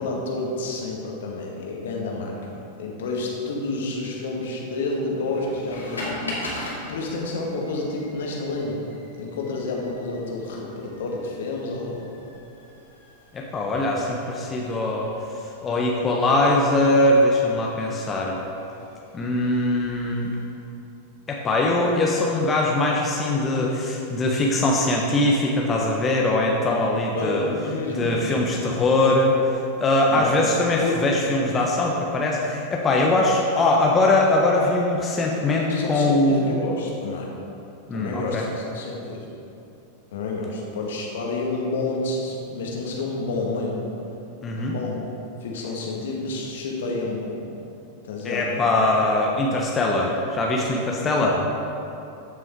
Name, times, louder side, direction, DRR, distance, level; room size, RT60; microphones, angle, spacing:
voice 1, 0.0-2.4 2.8-6.6 6.9-8.8 9.2-12.0 27.1-28.2 30.1-30.4 30.8-31.0 35.6-37.3 37.9-39.3 40.1-43.9 44.5-45.0 45.4-47.4 48.0-48.7, left 2 dB, 60° left, -1 dB, 1.9 m, -29 dB
sound 1, 5.3-20.5, left 1 dB, 75° left, 2.5 m, -41 dB
voice 2, 13.3-15.1 15.6-18.4 19.1-20.3 21.3-27.5 28.0-29.3 29.8-36.5 37.9-38.4 44.4-44.8 48.2-51.4, left 2 dB, 20° left, -1 dB, 1.1 m, -21 dB
14.5 x 6.2 x 4.7 m, 2.8 s
figure-of-eight pair, 90°, 0 cm